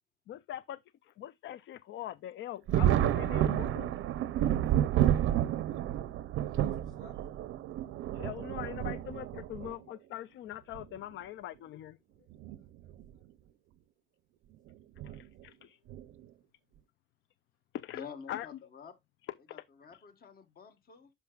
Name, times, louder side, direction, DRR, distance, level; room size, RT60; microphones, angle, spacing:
voice 1, 0.3-3.9 8.1-12.0 15.0-15.8 17.7-18.6 19.2-19.6 19.9-20.0, left 12 dB, 70° left, 0.4 m, -42 dB
Thunder, 2.7-9.7 10.7-10.8 12.3-12.6 12.9-13.0 15.0-15.2 15.9-16.2, right 11 dB, 85° right, 0.6 m, -30 dB
voice 2, 6.4-7.3 12.2-13.2 15.5-15.9, left 5 dB, 90° left, 2.6 m, -61 dB
voice 3, 17.9-18.9 19.5-21.1, left 6 dB, 50° left, 1.4 m, -49 dB
10.5 x 5.9 x 2.3 m
cardioid pair, 90°, 20 cm